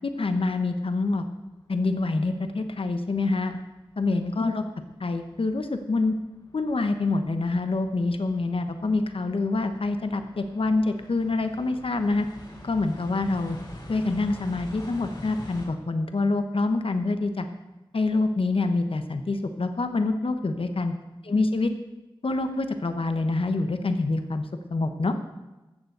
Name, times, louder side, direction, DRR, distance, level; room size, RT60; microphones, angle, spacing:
voice 1, 0.0-1.2 1.7-3.6 4.0-4.6 5.0-6.1 6.5-12.3 12.6-13.6 13.9-17.5 17.9-20.9 21.2-21.7 22.2-25.2, left 3 dB, 75° left, 8 dB, 1.0 m, -26 dB
sound 1, 1.6-1.7 2.4-2.5 3.0-3.6 4.0-15.7, left 1 dB, 50° left, 4.1 m, -45 dB
14.0 x 7.1 x 7.9 m, 1.1 s
wide cardioid pair, 65°, 9 cm